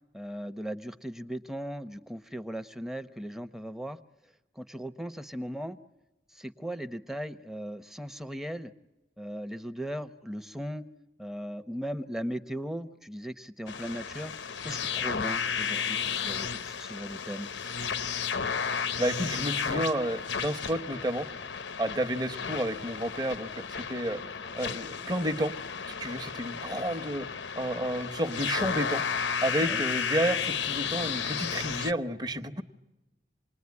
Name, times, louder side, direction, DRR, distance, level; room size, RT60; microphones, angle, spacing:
voice 1, 0.1-4.0 4.5-5.8 6.3-8.7 9.2-10.8 11.2-14.3 14.6-17.5 29.6-29.8, equal, ahead, 10 dB, 0.8 m, -38 dB
sound 1, 13.7-31.9, left 6 dB, 85° left, 0.8 m, -33 dB
voice 2, 19.0-21.3 21.8-24.2 24.5-25.5 26.0-27.3 27.5-29.0 29.4-32.6, right 1 dB, 20° right, 6 dB, 1.1 m, -31 dB
27.5 x 20.5 x 9.6 m, 1.0 s
head